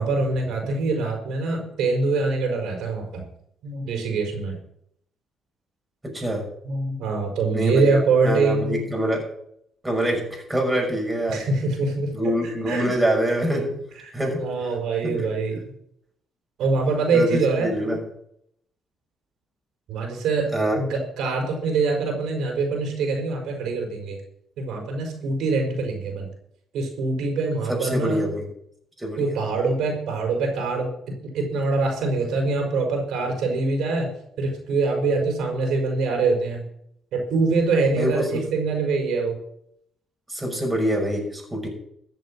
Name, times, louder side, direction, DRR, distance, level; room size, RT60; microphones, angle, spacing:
voice 1, 0.0-3.3 3.6-4.6 6.6-8.9 11.3-12.1 12.7-12.9 14.0-15.6 16.6-17.7 19.9-20.5 20.8-24.2 24.6-26.3 26.7-28.2 29.2-30.9 31.3-34.1 34.4-36.7 37.1-39.4, right 3 dB, 80° right, 2 dB, 5.3 m, -24 dB
voice 2, 6.0-6.4 7.5-9.3 9.8-11.4 12.1-13.8 14.1-14.4 15.0-15.3 17.1-18.0 20.5-20.8 27.7-28.5 29.0-29.3 38.0-38.5 40.3-41.7, right 1 dB, 15° right, 0 dB, 6.0 m, -25 dB
14.5 x 7.8 x 7.6 m, 0.71 s
cardioid pair, 90°, 0 cm